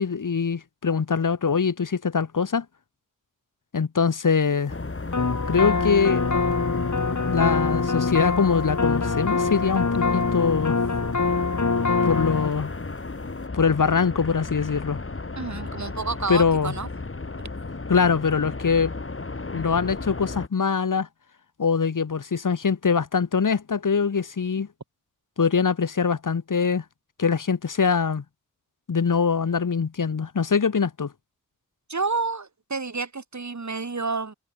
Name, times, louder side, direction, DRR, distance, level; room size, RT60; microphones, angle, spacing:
voice 1, 0.0-2.7 3.7-4.7 5.5-6.2 7.3-10.8 12.0-12.7 13.5-15.0 16.3-16.7 17.9-18.9 19.5-21.1 21.6-24.7 25.4-26.8 27.2-28.2 28.9-31.1, left 5 dB, 85° left, 2.1 m, -23 dB
sound 1, 4.7-20.5, left 3 dB, 45° left, 2.9 m, -33 dB
sound 2, 5.1-12.5, left 4 dB, 65° left, 5.2 m, -24 dB
voice 2, 15.4-16.9 31.9-34.3, right 4 dB, 65° right, 4.3 m, -29 dB
wide cardioid pair, 50°, 31 cm